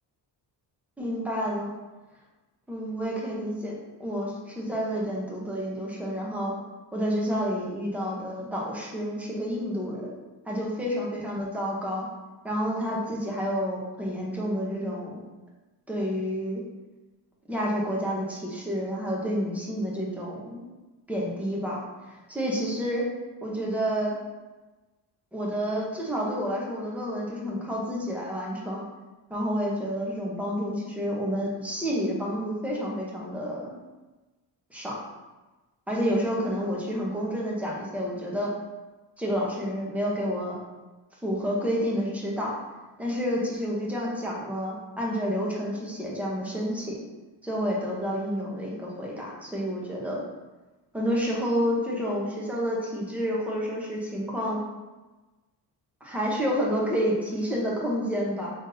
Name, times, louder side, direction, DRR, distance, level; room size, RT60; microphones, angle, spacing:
voice 1, 1.0-1.7 2.7-6.5 6.9-10.1 10.5-12.1 12.4-15.2 15.9-16.6 17.5-20.6 21.1-21.8 22.3-23.0 23.4-24.1 25.3-28.8 29.3-33.7 34.7-35.0 35.9-38.5 39.2-40.6 41.2-42.5 43.0-47.0 47.4-50.2 50.9-54.6 56.0-58.5, equal, 5° right, -4 dB, 0.8 m, -29 dB
5.2 x 3.6 x 2.6 m, 1.2 s
cardioid pair, 160°, 43 cm